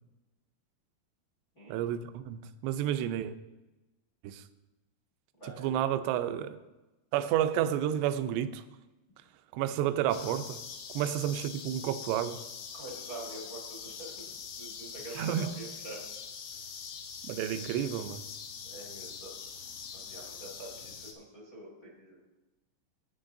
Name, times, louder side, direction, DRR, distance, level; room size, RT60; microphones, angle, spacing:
voice 1, 1.7-3.3 4.2-4.4 5.6-6.6 7.1-8.6 9.5-10.6 11.0-12.4 15.2-15.5 17.2-18.2, right 11 dB, 80° right, 10 dB, 2.7 m, -30 dB
voice 2, 5.4-5.8 12.7-14.1 14.5-16.0 16.6-16.7 18.6-19.4 19.9-22.2, right 2 dB, 30° left, -3 dB, 1.5 m, -46 dB
sound 1, 10.1-21.1, left 6 dB, 90° left, 3.5 m, -43 dB
16.5 x 9.3 x 2.7 m, 1.0 s
omnidirectional pair, 5.2 m